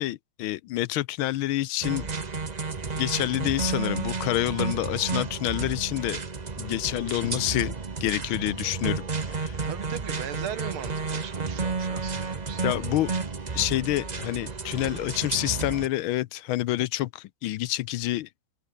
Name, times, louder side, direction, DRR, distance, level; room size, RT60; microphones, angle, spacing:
voice 1, 0.0-2.1 3.0-6.2 6.6-7.7 8.0-9.6 12.6-13.1 13.5-18.3, left 15 dB, 80° left, 1.4 m, -28 dB
sound 1, 1.8-15.9, right 4 dB, 25° right, 0.9 m, -32 dB
voice 2, 9.6-12.7, right 9 dB, 80° right, 2.3 m, -38 dB
open air
omnidirectional pair, 2.3 m